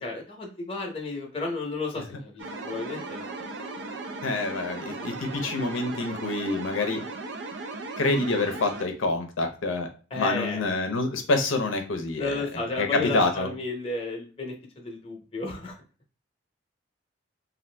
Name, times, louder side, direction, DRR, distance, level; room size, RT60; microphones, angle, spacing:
voice 1, 0.0-3.3 10.1-10.6 12.2-15.8, left 3 dB, 30° left, 1 dB, 0.8 m, -33 dB
sound 1, 2.4-8.9, right 3 dB, 60° right, 0.4 m, -37 dB
voice 2, 4.2-7.0 8.0-9.9 10.1-12.4 12.8-13.5, left 2 dB, 90° left, 5 dB, 0.6 m, -27 dB
2.5 x 2.5 x 3.2 m, 0.36 s
head